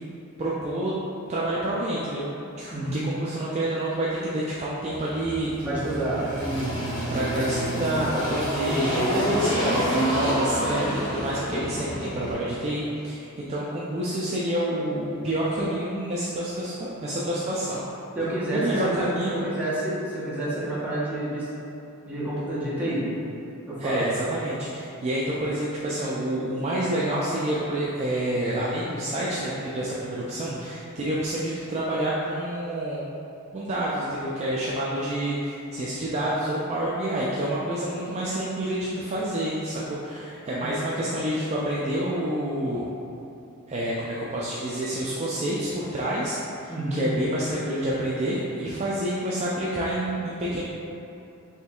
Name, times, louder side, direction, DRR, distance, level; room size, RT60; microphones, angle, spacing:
voice 1, 0.4-0.9 1.3-2.3 2.6-5.9 7.1-17.8 18.5-19.4 23.8-33.0 33.5-42.9 43.7-46.4 46.9-50.6, right 1 dB, 30° right, -7 dB, 0.3 m, -28 dB
voice 2, 2.7-3.1 5.6-6.7 18.1-21.5 22.0-23.1 23.7-24.0 30.3-30.6 40.6-40.9 46.7-47.1, right 1 dB, 5° right, -10 dB, 0.9 m, -29 dB
Engine, 4.9-12.3, equal, 20° left, 0.9 m, -28 dB
4.3 x 3.1 x 2.3 m, 2.8 s
head